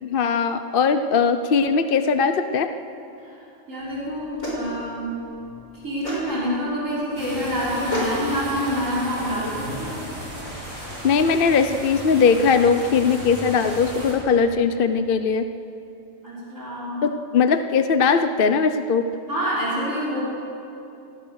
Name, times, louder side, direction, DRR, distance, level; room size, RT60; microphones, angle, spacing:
voice 1, 0.0-2.7 11.0-15.5 17.0-19.1, left 5 dB, 50° left, 9 dB, 0.9 m, -20 dB
voice 2, 3.7-5.1 5.7-10.0 16.2-17.0 19.3-20.2, equal, 70° right, -6 dB, 6.2 m, -27 dB
sound 1, 3.8-9.9, left 1 dB, 85° left, 6.1 m, -34 dB
sound 2, 7.2-14.1, equal, 85° right, 7.4 m, -35 dB
26.5 x 18.5 x 6.4 m, 2.8 s
omnidirectional pair, 1.4 m